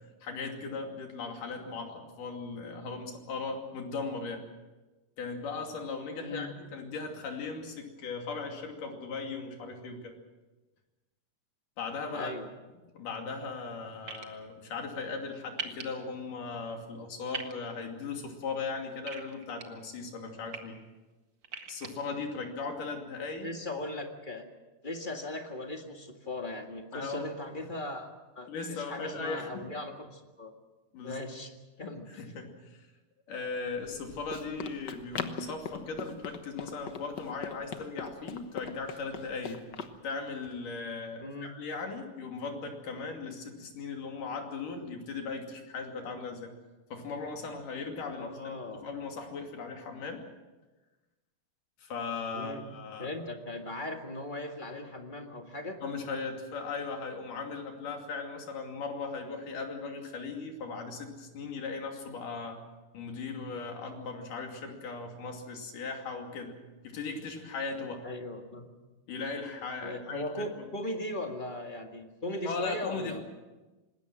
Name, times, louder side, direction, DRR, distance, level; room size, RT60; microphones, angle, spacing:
voice 1, 0.2-4.4 5.2-10.1 11.8-12.3 12.9-20.8 21.7-23.5 26.9-27.3 28.5-29.7 30.9-31.2 32.1-32.9 33.3-39.6 40.0-46.5 46.9-50.2 51.8-53.1 55.8-62.6 62.9-66.6 66.8-68.1 69.1-70.2 70.6-70.7 72.5-73.3, left 4 dB, 85° left, 3 dB, 4.3 m, -38 dB
voice 2, 6.2-6.5 12.1-12.5 23.4-24.4 24.8-30.5 31.0-32.1 41.2-41.6 48.2-48.9 52.3-52.7 53.0-55.8 68.0-68.7 69.8-73.2, left 2 dB, 20° left, 3 dB, 1.3 m, -38 dB
sound 1, 14.1-14.3 15.6-15.8 17.3-17.5 19.1-19.6 20.3-20.6 21.4-21.9, right 5 dB, 45° right, 2.0 m, -38 dB
Run, 33.8-40.0, left 6 dB, 65° left, 1.0 m, -41 dB
26.0 x 20.0 x 6.2 m, 1.2 s
omnidirectional pair, 3.6 m